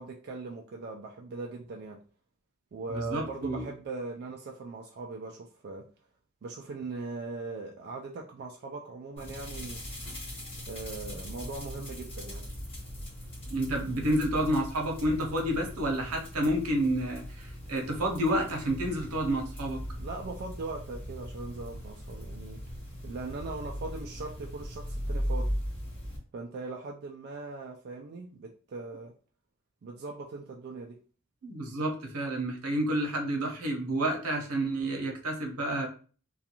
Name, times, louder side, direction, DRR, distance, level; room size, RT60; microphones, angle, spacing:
voice 1, 0.0-2.0 2.7-5.9 6.4-9.8 10.7-12.5 20.0-22.6 23.0-25.5 26.3-29.1 29.8-31.0, right 3 dB, 45° right, 0 dB, 0.3 m, -40 dB
voice 2, 2.9-3.6 13.5-19.8 31.4-35.9, right 1 dB, 75° right, 2 dB, 0.8 m, -30 dB
sound 1, 9.2-26.2, equal, 25° left, 1.0 m, -39 dB
2.4 x 2.3 x 2.8 m, 0.39 s
head